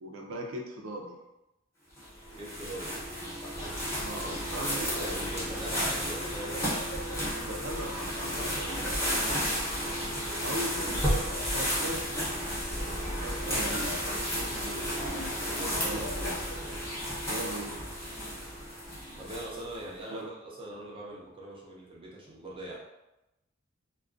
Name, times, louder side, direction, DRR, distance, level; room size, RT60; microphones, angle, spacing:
voice 1, 0.0-1.1 4.0-4.9 7.4-8.6 10.4-10.8 11.5-12.0 12.9-14.0 14.3-15.0 15.8-16.4 17.3-17.8 20.1-20.3, right 1 dB, 80° right, 1 dB, 0.5 m, -39 dB
sound 1, 2.0-19.7, equal, 15° left, 0.8 m, -32 dB
voice 2, 2.3-3.0 4.0-6.6 8.4-8.7 15.6-15.8 19.2-22.8, right 1 dB, 25° right, -4 dB, 0.6 m, -41 dB
2.3 x 2.2 x 2.4 m, 0.95 s
head